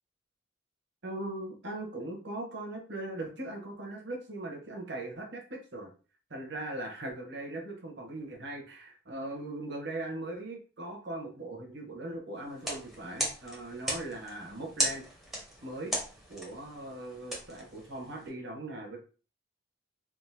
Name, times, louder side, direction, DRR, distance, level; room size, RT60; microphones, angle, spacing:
voice 1, 1.0-5.9 6.3-15.0 15.6-16.0 16.3-19.0, right 2 dB, 60° right, 1 dB, 1.1 m, -39 dB
sound 1, 12.5-18.3, equal, ahead, 1.0 m, -37 dB
3.6 x 2.6 x 2.8 m, 0.37 s
head